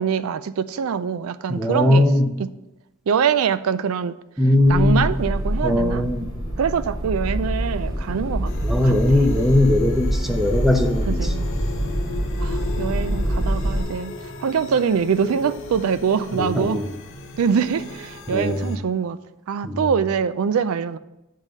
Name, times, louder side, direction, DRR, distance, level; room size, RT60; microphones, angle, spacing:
voice 1, 0.0-2.1 2.4-2.5 3.1-4.1 4.7-6.0 6.6-8.5 8.8-9.3 11.1-11.5 12.4-14.1 14.4-16.8 17.4-19.2 19.5-21.0, right 6 dB, 90° right, 14 dB, 0.4 m, -24 dB
voice 2, 1.5-2.3 4.4-5.1 5.6-6.3 8.6-11.3 16.3-16.8 18.3-18.7 19.6-19.8, left 1 dB, ahead, 4 dB, 0.6 m, -19 dB
sound 1, 4.6-13.8, equal, 20° right, 2.9 m, -25 dB
sound 2, 8.5-18.8, left 2 dB, 65° left, 0.9 m, -37 dB
8.1 x 3.7 x 6.5 m, 0.93 s
head